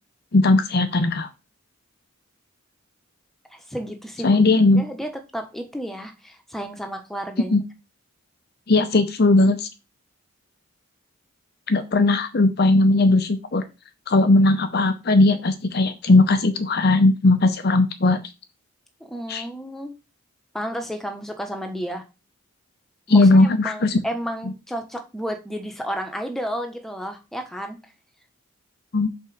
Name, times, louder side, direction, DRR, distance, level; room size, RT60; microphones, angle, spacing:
voice 1, 0.3-1.3 4.2-4.8 7.5-7.6 8.7-9.7 11.7-13.6 14.1-18.2 19.3-19.4 23.1-24.0 28.9-29.1, left 2 dB, 45° left, 9 dB, 0.6 m, -18 dB
voice 2, 3.5-4.4 4.7-7.6 19.1-20.0 20.5-22.0 23.1-27.8, equal, ahead, 4 dB, 1.1 m, -32 dB
5.5 x 4.5 x 6.3 m, 0.27 s
head